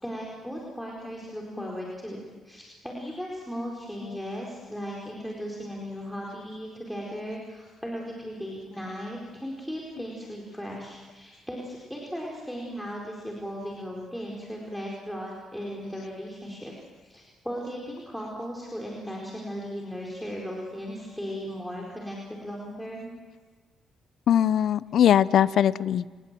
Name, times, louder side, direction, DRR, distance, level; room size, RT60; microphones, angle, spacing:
voice 1, 0.0-16.7 17.0-23.1, equal, ahead, -2 dB, 4.5 m, -37 dB
voice 2, 24.3-26.1, left 10 dB, 65° left, 18 dB, 0.6 m, -21 dB
28.5 x 20.0 x 7.6 m, 1.4 s
cardioid pair, 90°, 0 cm